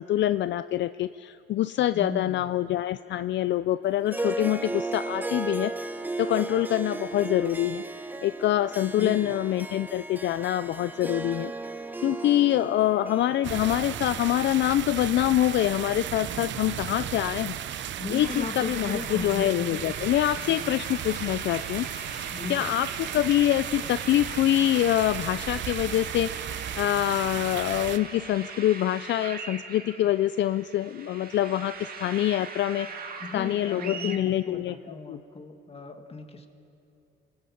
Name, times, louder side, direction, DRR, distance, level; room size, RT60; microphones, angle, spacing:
voice 1, 0.0-5.7 6.2-7.8 8.2-11.5 12.0-17.6 18.1-21.9 22.5-22.9 23.1-26.3 26.8-32.9 33.3-34.7 35.1-35.2, left 13 dB, 65° left, 14 dB, 0.4 m, -25 dB
voice 2, 1.9-2.5 9.0-9.3 18.0-20.1 20.4-20.8 22.2-22.7 33.2-36.5, left 4 dB, 30° left, 6 dB, 2.0 m, -37 dB
Harp, 4.1-16.6, right 2 dB, 10° right, 1.0 m, -36 dB
sound 1, 13.4-28.0, right 10 dB, 70° right, 0.9 m, -35 dB
sound 2, 18.2-34.2, right 5 dB, 50° right, 2.2 m, -41 dB
26.0 x 19.0 x 5.8 m, 2.7 s
cardioid pair, 90°, 20 cm